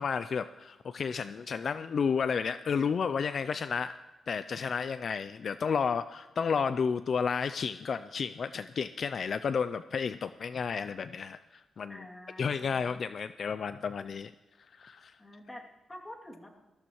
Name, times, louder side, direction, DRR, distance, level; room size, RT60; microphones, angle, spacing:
voice 1, 0.0-3.9 4.3-12.0 12.4-14.3 14.7-15.2, left 6 dB, 60° left, 13 dB, 0.4 m, -32 dB
voice 2, 11.9-13.0 15.2-16.6, left 1 dB, 20° left, 1 dB, 2.5 m, -48 dB
20.5 x 15.0 x 3.1 m, 1.2 s
cardioid pair, 85°, 0 cm